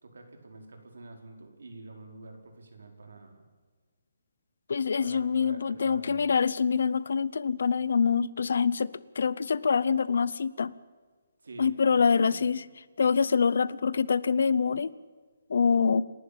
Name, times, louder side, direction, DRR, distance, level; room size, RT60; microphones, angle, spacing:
voice 1, 0.0-3.4 5.0-6.3 11.4-12.4, right 2 dB, 85° right, 4 dB, 4.9 m, -47 dB
voice 2, 4.7-8.9 9.2-10.7 11.6-12.6 13.0-14.9 15.5-16.0, left 6 dB, 60° left, 19 dB, 0.8 m, -25 dB
28.0 x 11.5 x 8.7 m, 1.5 s
hypercardioid pair, 170°, 0 cm